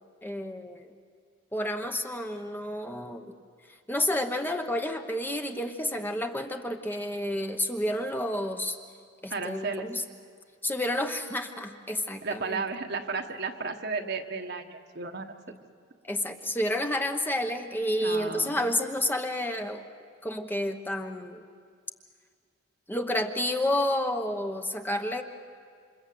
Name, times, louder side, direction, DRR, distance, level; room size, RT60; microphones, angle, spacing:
voice 1, 0.2-0.9 1.5-3.3 3.7-8.8 9.2-10.0 10.6-12.6 16.0-19.9 20.2-21.4 22.9-25.2, left 1 dB, 10° left, 5 dB, 1.0 m, -30 dB
voice 2, 9.3-9.9 12.2-15.4 18.0-18.7, right 4 dB, 55° right, 5 dB, 1.4 m, -34 dB
28.0 x 26.5 x 7.8 m, 2.1 s
head